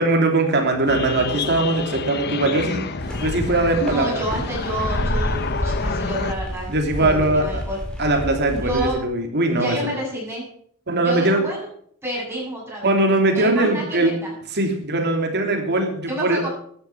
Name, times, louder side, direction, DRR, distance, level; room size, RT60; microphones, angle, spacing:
voice 1, 0.0-2.8 3.2-4.2 6.7-7.6 8.0-9.8 10.9-11.4 12.8-14.2 14.5-16.4, right 2 dB, 50° right, 3 dB, 3.3 m, -20 dB
sound 1, 0.9-6.3, left 4 dB, 50° left, 0.9 m, -29 dB
sound 2, 3.0-8.9, equal, 5° left, 3.8 m, -29 dB
voice 2, 3.9-6.7 7.0-7.8 8.5-9.0 9.5-10.4 11.0-11.7 12.0-12.9 13.3-14.3 16.1-16.5, equal, 10° right, -4 dB, 7.8 m, -29 dB
14.0 x 10.5 x 6.2 m, 0.62 s
head